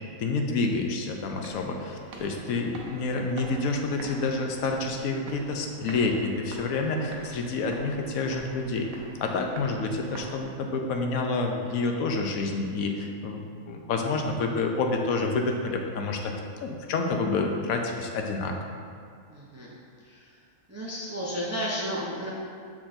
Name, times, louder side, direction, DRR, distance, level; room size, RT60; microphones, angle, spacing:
voice 1, 0.2-8.9 9.2-16.3 16.6-18.8, left 3 dB, 80° left, 2 dB, 1.0 m, -28 dB
sound 1, 0.9-10.9, right 3 dB, 75° right, 1.1 m, -45 dB
voice 2, 19.3-20.4 20.7-22.3, equal, 20° right, -5 dB, 0.5 m, -33 dB
6.3 x 6.0 x 2.6 m, 2.2 s
omnidirectional pair, 1.5 m